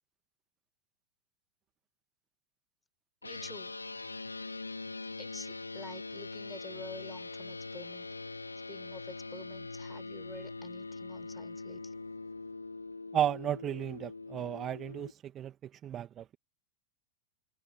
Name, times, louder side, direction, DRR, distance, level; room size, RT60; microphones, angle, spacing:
sound 1, 3.2-15.1, left 3 dB, 80° left, 4.7 m, -43 dB
voice 1, 3.2-3.7 5.2-8.1 8.7-11.9, left 3 dB, 10° left, 7.9 m, -49 dB
voice 2, 13.1-16.4, right 10 dB, 30° right, 2.3 m, -34 dB
figure-of-eight pair, 90°, 0 cm